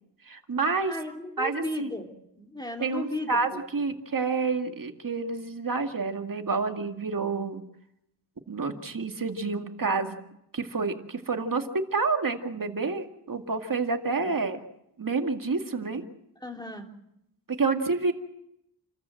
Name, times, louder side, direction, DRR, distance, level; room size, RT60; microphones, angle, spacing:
voice 1, 0.3-1.0 1.4-1.9 2.8-7.6 8.5-10.2 10.5-14.6 15.0-16.0 17.5-18.1, right 4 dB, 50° right, 5 dB, 2.2 m, -29 dB
voice 2, 0.9-2.1 2.4-3.6 14.2-14.4 16.4-16.9, left 1 dB, 10° left, 2 dB, 3.5 m, -35 dB
28.5 x 14.0 x 7.8 m, 0.81 s
wide cardioid pair, 80°, 41 cm